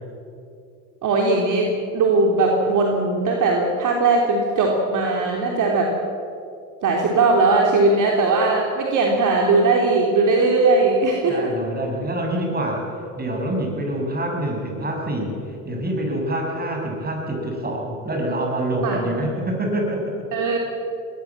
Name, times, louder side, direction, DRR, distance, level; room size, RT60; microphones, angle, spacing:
voice 1, 1.0-5.9 6.8-11.5 18.8-19.0 20.3-20.6, right 3 dB, 50° right, 0 dB, 3.4 m, -19 dB
voice 2, 11.2-15.4 15.6-20.1, right 1 dB, 25° right, 1 dB, 7.4 m, -26 dB
21.0 x 19.0 x 7.4 m, 2.6 s
hypercardioid pair, 80°, 40 cm